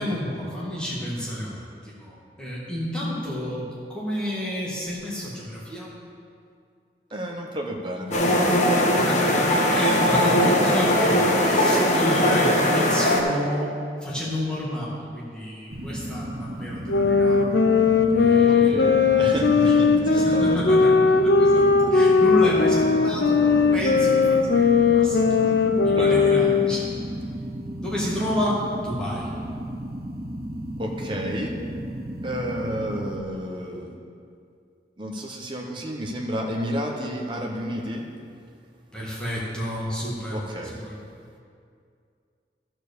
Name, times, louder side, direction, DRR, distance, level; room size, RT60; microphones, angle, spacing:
voice 1, 0.0-6.0 8.9-13.7 14.0-17.5 18.1-19.0 19.4-19.5 20.1-20.9 21.2-25.5 25.8-26.9 27.8-29.3 38.9-41.0, equal, 5° left, -7 dB, 1.9 m, -30 dB
voice 2, 7.1-8.7 18.5-20.9 25.4-25.5 25.9-26.2 30.8-31.6 32.2-33.9 35.0-38.6 38.9-39.0 40.3-40.8, equal, 30° right, 1 dB, 1.0 m, -31 dB
sound 1, 8.1-13.2, equal, 40° left, 1.0 m, -20 dB
sound 2, 15.7-33.2, right 1 dB, 55° right, 0.9 m, -34 dB
sound 3, 16.9-26.9, left 4 dB, 80° left, 0.7 m, -19 dB
13.0 x 4.6 x 6.8 m, 2.3 s
head